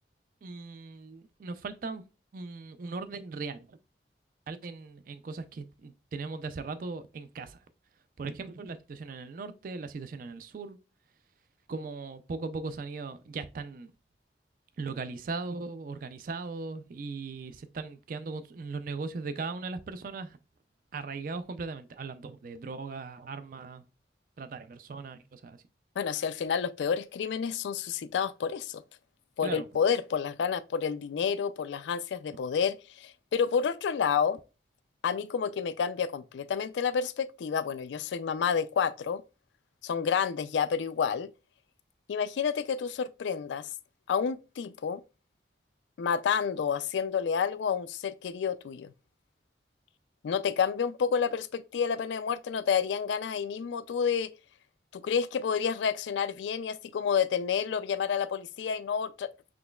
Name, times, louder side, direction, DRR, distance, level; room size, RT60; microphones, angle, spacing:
voice 1, 0.4-2.1 2.3-3.8 4.5-7.6 8.2-10.8 11.7-13.9 14.8-20.4 20.9-23.8 24.4-25.6 29.4-29.7, right 4 dB, 50° right, 0.3 m, -38 dB
voice 2, 26.0-28.8 29.4-34.4 35.0-39.2 39.8-41.3 42.1-43.7 44.1-45.0 46.0-48.9 50.2-54.3 54.9-59.3, left 6 dB, 80° left, 0.3 m, -29 dB
6.0 x 3.0 x 2.3 m
head